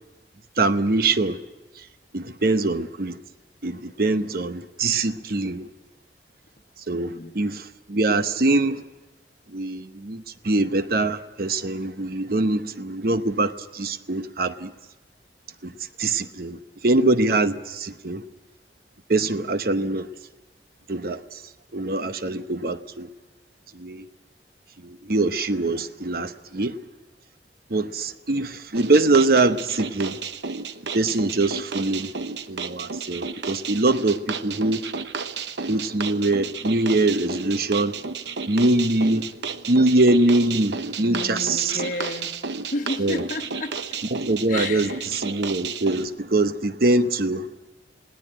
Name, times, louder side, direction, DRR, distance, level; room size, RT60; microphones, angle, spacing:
voice 1, 0.6-1.4 2.1-3.2 3.6-5.7 6.9-8.8 9.5-14.7 15.6-15.7 16.0-18.2 19.1-20.1 20.9-21.2 21.7-23.1 23.7-24.0 24.8-26.8 27.7-30.2 30.9-32.1 32.5-34.8 35.7-37.9 38.5-39.3 39.7-41.8 43.0-43.2 44.1-47.5, right 2 dB, 55° right, 0.9 m, -23 dB
sound 1, 28.7-46.1, right 5 dB, 85° right, 0.9 m, -33 dB
voice 2, 41.0-42.4 42.7-44.0 44.5-45.1, left 2 dB, 50° left, 1.2 m, -32 dB
21.0 x 17.5 x 8.9 m
head